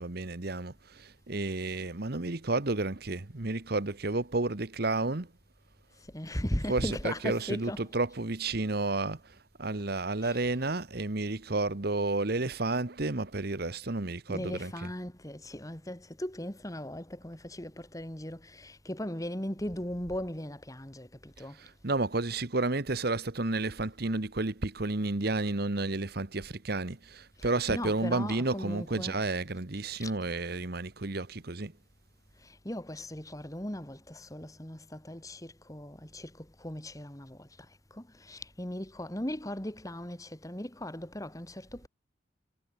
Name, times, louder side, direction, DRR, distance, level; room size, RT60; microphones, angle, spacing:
voice 1, 0.0-5.3 6.7-14.9 21.4-31.7, right 2 dB, 50° right, 1.2 m, -31 dB
voice 2, 6.1-7.8 10.2-10.4 14.3-21.6 27.4-29.2 30.0-30.1 32.4-37.5 37.9-41.9, left 1 dB, 15° left, 2.2 m, -38 dB
head